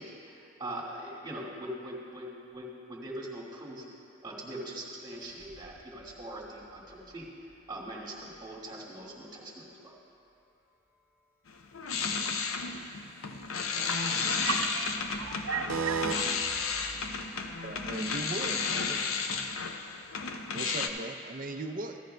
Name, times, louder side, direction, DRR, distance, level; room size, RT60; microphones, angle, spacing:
voice 1, 0.0-3.9 4.2-7.3 7.7-10.0, right 1 dB, 20° right, -5 dB, 1.7 m, -42 dB
sound 1, 5.1-9.2 12.5-17.9, right 1 dB, 15° left, 0.9 m, -56 dB
sound 2, 11.5-20.9, left 5 dB, 85° left, 0.6 m, -33 dB
voice 2, 13.5-16.8, right 5 dB, 80° right, 4 dB, 0.7 m, -34 dB
voice 3, 17.6-19.1 20.5-22.0, right 2 dB, 40° right, 6 dB, 0.5 m, -38 dB
15.5 x 13.0 x 2.2 m, 2.7 s
head